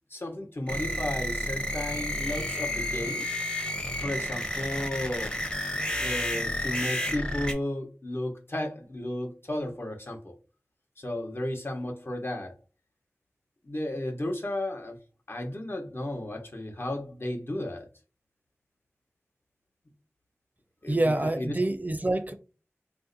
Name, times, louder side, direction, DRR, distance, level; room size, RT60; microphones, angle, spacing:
voice 1, 0.1-3.3 4.0-5.4 6.0-10.3 11.0-12.5 13.6-15.0 15.3-17.9 20.8-21.6, left 1 dB, 50° left, 0.9 m, -34 dB
sound 1, 0.7-7.5, left 1 dB, 20° left, 0.8 m, -31 dB
voice 2, 20.9-22.3, right 2 dB, 35° right, 0.5 m, -26 dB
2.6 x 2.1 x 3.8 m
wide cardioid pair, 50°, 5 cm